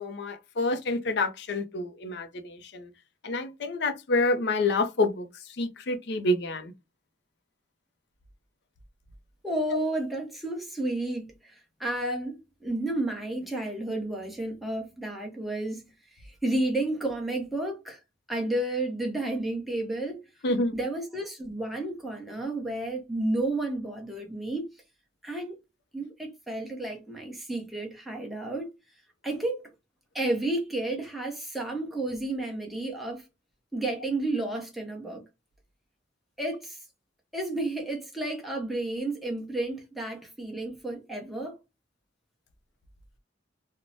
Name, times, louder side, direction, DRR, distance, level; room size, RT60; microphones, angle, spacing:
voice 1, 0.0-2.9 3.2-5.3 5.6-6.7 12.0-12.2 20.4-20.8, left 2 dB, 60° left, 0.5 m, -28 dB
voice 2, 9.4-15.9 16.2-18.0 18.3-20.3 20.7-24.7 25.2-25.6 25.9-28.7 29.2-29.7 30.1-33.2 33.7-35.2 36.4-36.8 37.3-41.6, right 2 dB, ahead, 0.7 m, -31 dB
3.0 x 2.0 x 2.6 m
head